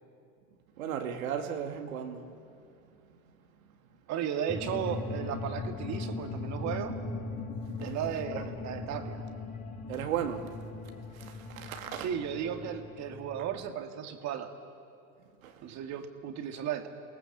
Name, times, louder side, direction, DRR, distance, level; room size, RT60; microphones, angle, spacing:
voice 1, 0.8-2.3 7.6-7.9 8.3-8.4 9.9-12.1 15.4-15.7, right 8 dB, 75° right, 2.2 m, -36 dB
voice 2, 4.1-7.0 7.8-9.2 12.0-14.5 15.6-16.9, right 8 dB, 40° right, 2.2 m, -35 dB
sound 1, 4.5-13.7, left 3 dB, 20° left, 2.9 m, -39 dB
28.5 x 18.5 x 7.3 m
hypercardioid pair, 105°, 41 cm